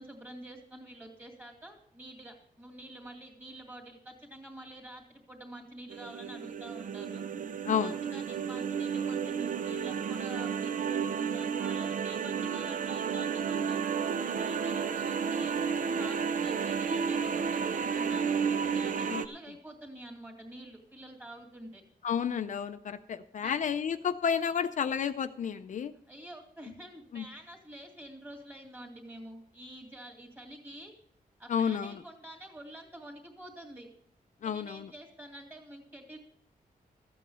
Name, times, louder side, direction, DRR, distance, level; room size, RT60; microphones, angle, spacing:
voice 1, 0.0-7.2 7.8-13.8 14.3-21.8 23.4-23.5 26.1-30.9 31.4-33.9 34.4-36.2, right 1 dB, 10° right, 1 dB, 2.5 m, -47 dB
sound 1, 5.9-19.3, right 6 dB, 60° right, 0.6 m, -32 dB
voice 2, 7.6-8.0 19.1-19.2 22.0-25.9 27.1-27.3 31.5-32.0 34.4-34.9, left 7 dB, 55° left, 9 dB, 0.5 m, -31 dB
14.0 x 8.4 x 5.4 m, 0.64 s
wide cardioid pair, 170°, 15 cm